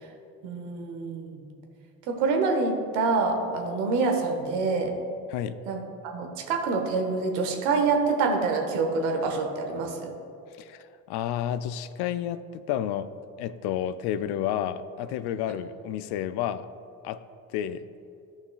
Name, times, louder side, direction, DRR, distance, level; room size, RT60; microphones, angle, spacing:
voice 1, 0.4-1.4 2.1-4.9 5.7-10.1, right 4 dB, 70° right, 3 dB, 1.3 m, -26 dB
voice 2, 10.6-13.1 13.4-16.7 17.0-17.2 17.5-17.9, left 10 dB, 60° left, 13 dB, 0.5 m, -30 dB
13.0 x 5.7 x 2.4 m, 2.6 s
hypercardioid pair, 65°, 46 cm